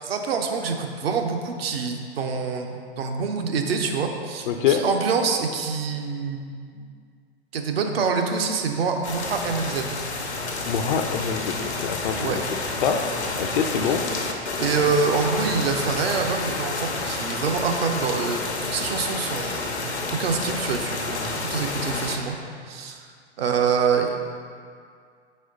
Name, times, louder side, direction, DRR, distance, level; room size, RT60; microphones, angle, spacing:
voice 1, 0.0-6.9 7.5-10.0 12.1-12.4 13.9-14.0 14.6-19.9 20.2-22.3 22.7-23.1 23.4-24.2, right 5 dB, 65° right, 4 dB, 0.7 m, -26 dB
voice 2, 4.5-4.8 10.7-12.4 12.8-13.0 13.4-14.0, left 8 dB, 50° left, 5 dB, 0.4 m, -25 dB
sound 1, 9.0-22.2, left 3 dB, 80° left, 0.8 m, -29 dB
4.5 x 4.2 x 5.1 m, 2.2 s
figure-of-eight pair, 95°, 33 cm